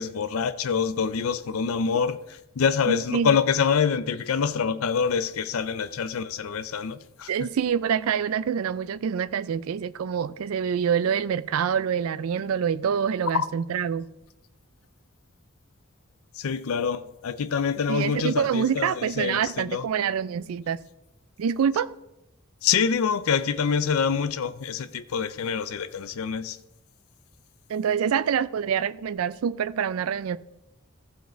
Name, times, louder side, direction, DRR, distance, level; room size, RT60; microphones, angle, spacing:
voice 1, 0.0-7.3 13.3-13.5 16.4-19.8 22.6-26.6, left 6 dB, 80° left, 0.5 m, -26 dB
voice 2, 2.9-3.4 7.3-14.0 17.9-20.8 21.4-21.9 27.7-30.4, right 7 dB, 80° right, 0.4 m, -26 dB
15.0 x 5.1 x 4.4 m
head